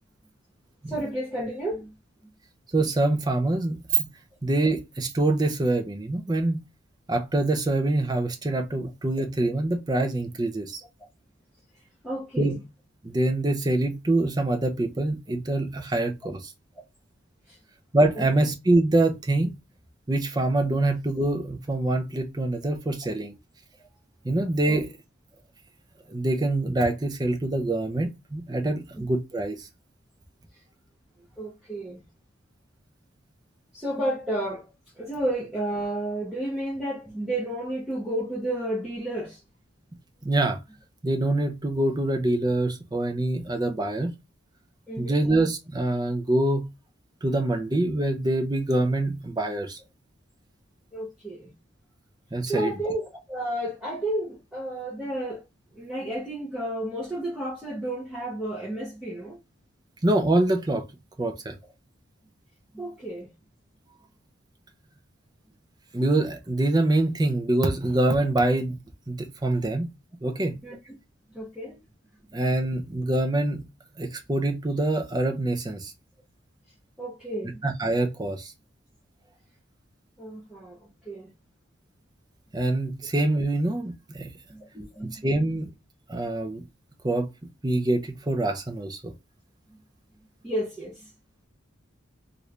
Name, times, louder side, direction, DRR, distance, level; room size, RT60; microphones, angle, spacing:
voice 1, 0.9-1.9 12.0-12.6 17.5-17.6 18.1-18.2 24.6-24.8 30.5-30.6 31.4-32.0 33.7-39.4 44.9-45.2 50.9-51.5 52.5-55.4 55.7-59.4 62.7-63.3 70.6-70.8 71.3-71.8 77.0-77.6 80.2-80.8 81.0-81.3 84.5-85.3 86.2-86.3 89.7-89.8 90.4-91.1, right 1 dB, 5° right, 0.9 m, -32 dB
voice 2, 2.7-4.1 4.4-6.6 7.1-10.8 12.4-12.5 13.0-16.5 17.9-19.5 20.1-23.3 24.2-24.9 26.1-29.7 40.2-40.6 41.0-44.1 45.0-46.7 47.2-49.8 52.3-52.7 60.0-60.9 61.2-61.6 65.9-68.8 69.1-69.9 70.2-70.6 72.3-73.6 74.0-75.9 77.6-78.5 82.5-84.3 85.0-85.7 86.1-86.6 87.0-87.3 87.6-89.1, right 2 dB, 20° right, 0.5 m, -25 dB
3.2 x 2.5 x 3.1 m
head